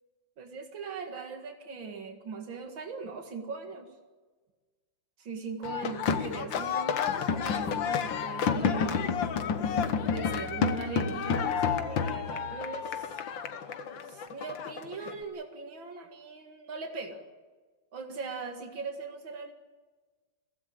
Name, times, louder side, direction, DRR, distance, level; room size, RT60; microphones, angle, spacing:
voice 1, 0.4-3.9 5.2-7.0 7.3-9.1 10.0-13.2 14.0-17.2 17.9-19.5, right 4 dB, 85° right, 4 dB, 2.7 m, -40 dB
sound 1, 5.6-15.2, left 6 dB, 75° left, 1.9 m, -30 dB
23.0 x 16.5 x 8.8 m, 1.4 s
omnidirectional pair, 2.1 m